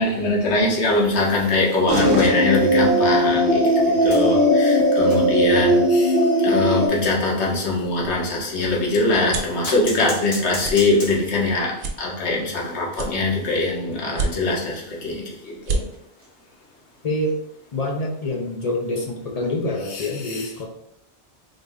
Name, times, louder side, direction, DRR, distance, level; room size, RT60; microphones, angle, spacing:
voice 1, 0.0-15.8 19.9-20.5, left 2 dB, 85° left, -2 dB, 1.1 m, -22 dB
sound 1, 1.9-6.9, equal, 60° right, 0.8 m, -18 dB
sound 2, 4.0-8.8 9.6-11.5 11.8-12.0 12.3-12.4 12.7-12.8 13.4-16.5 16.9-17.2 18.3-18.4, equal, 65° left, 1.8 m, -40 dB
sound 3, 9.1-9.6 10.1-10.3 10.6-10.8 11.3-11.4 11.8-12.6 12.9-13.6 14.1-14.7 15.2-15.3 15.5-15.8, right 3 dB, 85° right, 0.9 m, -28 dB
voice 2, 17.7-20.7, left 1 dB, 45° left, 0 dB, 0.5 m, -26 dB
3.8 x 2.1 x 3.5 m, 0.74 s
omnidirectional pair, 1.1 m